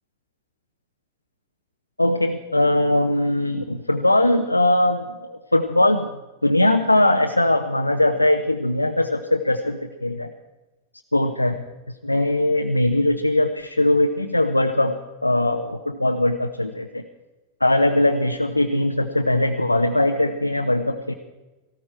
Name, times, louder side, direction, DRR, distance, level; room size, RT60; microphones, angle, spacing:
voice 1, 2.0-6.1 6.4-10.3 11.1-11.6 12.0-17.0 17.6-21.1, left 1 dB, 85° left, 4 dB, 0.9 m, -20 dB
19.0 x 17.0 x 4.4 m, 1.1 s
figure-of-eight pair, 90°, 0 cm